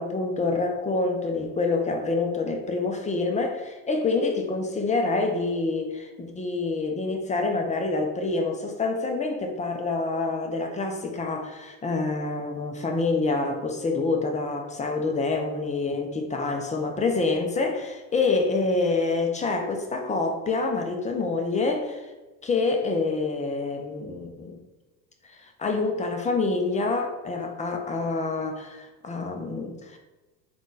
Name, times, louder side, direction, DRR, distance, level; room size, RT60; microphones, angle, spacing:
voice 1, 0.0-22.1 22.4-24.6 25.4-30.0, left 3 dB, 15° left, 3 dB, 0.5 m, -27 dB
3.7 x 2.5 x 3.9 m, 1.2 s
hypercardioid pair, 90°, 50 cm